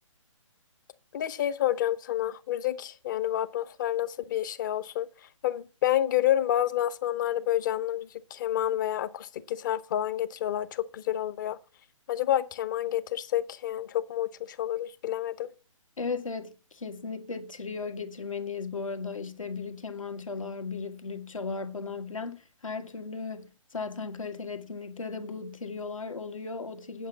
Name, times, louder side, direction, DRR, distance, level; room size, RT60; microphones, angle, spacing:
voice 1, 1.1-5.1 5.4-11.6 12.1-15.5, left 12 dB, 35° left, 0.8 m, -29 dB
voice 2, 16.0-27.1, left 4 dB, 75° left, 1.8 m, -36 dB
8.3 x 8.3 x 7.1 m
figure-of-eight pair, 140°, 17 cm